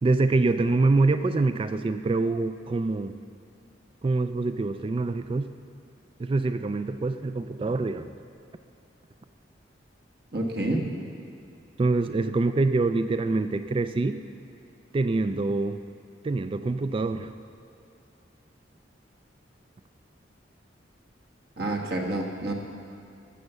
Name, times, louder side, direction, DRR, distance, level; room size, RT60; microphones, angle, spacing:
voice 1, 0.0-3.1 4.0-5.5 6.2-8.1 11.8-14.2 14.9-15.8 16.2-17.3, right 3 dB, 30° right, 10 dB, 0.3 m, -25 dB
voice 2, 10.3-10.9 21.6-22.5, right 1 dB, 60° right, 1 dB, 1.4 m, -28 dB
12.5 x 7.2 x 6.8 m, 2.6 s
head